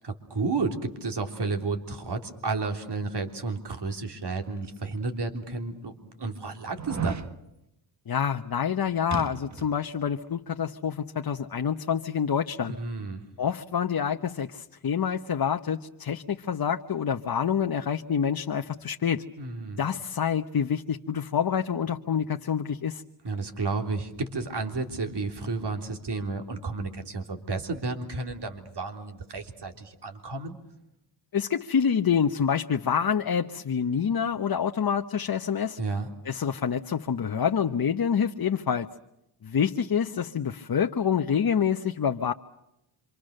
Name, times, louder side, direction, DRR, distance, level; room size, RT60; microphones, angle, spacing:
voice 1, 0.0-7.2 12.8-13.2 19.4-19.8 23.2-30.6 35.8-36.1, right 3 dB, 60° right, 5 dB, 3.6 m, -32 dB
sound 1, 4.8-4.9 5.5-5.6 6.7-7.3 9.1-9.8 10.1-10.2, right 5 dB, 35° right, 1.4 m, -33 dB
voice 2, 8.1-12.8 13.4-19.2 19.8-23.0 31.3-35.8 36.2-38.9 39.4-42.3, left 7 dB, 50° left, 5 dB, 1.1 m, -27 dB
27.0 x 25.5 x 6.6 m, 0.85 s
cardioid pair, 65°, 47 cm